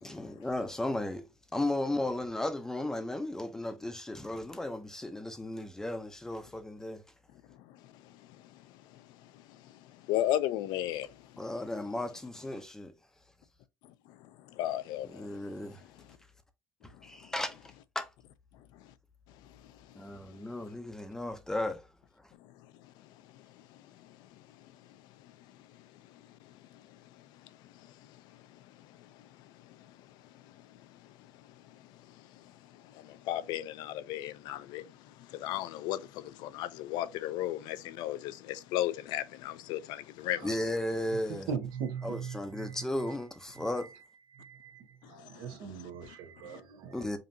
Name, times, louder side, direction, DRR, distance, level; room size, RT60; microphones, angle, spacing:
voice 1, 0.0-1.2 1.5-7.0 11.4-12.9 15.0-15.8 16.8-18.1 19.9-21.9 40.4-41.5 42.0-43.9 46.9-47.2, left 1 dB, 5° left, 0.6 m, -35 dB
voice 2, 7.7-8.3 8.9-9.3 9.6-9.7 10.1-11.2 14.1-14.2 14.5-15.3 23.3-23.4 23.7-23.8 24.1-24.2 25.2-25.3 26.5-26.8 27.6-27.7 28.1-28.2 28.8-29.9 30.4-30.6 31.4-31.5 32.1-40.5 45.0-46.1 46.4-46.6, left 13 dB, 75° left, 0.5 m, -36 dB
voice 3, 41.5-42.1 44.4-44.7 45.4-46.9, right 6 dB, 80° right, 1.1 m, -38 dB
5.2 x 2.8 x 2.6 m
cardioid pair, 155°, 7 cm